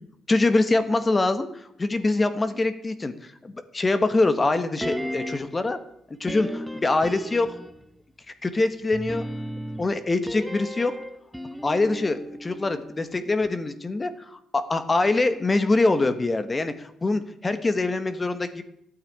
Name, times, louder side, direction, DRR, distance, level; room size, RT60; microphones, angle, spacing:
voice 1, 0.3-5.8 6.1-7.5 8.4-9.3 9.8-10.9 11.6-18.6, left 2 dB, 25° left, 10 dB, 1.3 m, -24 dB
sound 1, 4.8-5.6 6.3-7.9 8.9-13.1 13.4-13.5, equal, ahead, 1.2 m, -35 dB
13.0 x 9.1 x 8.7 m, 0.74 s
cardioid pair, 90°, 0 cm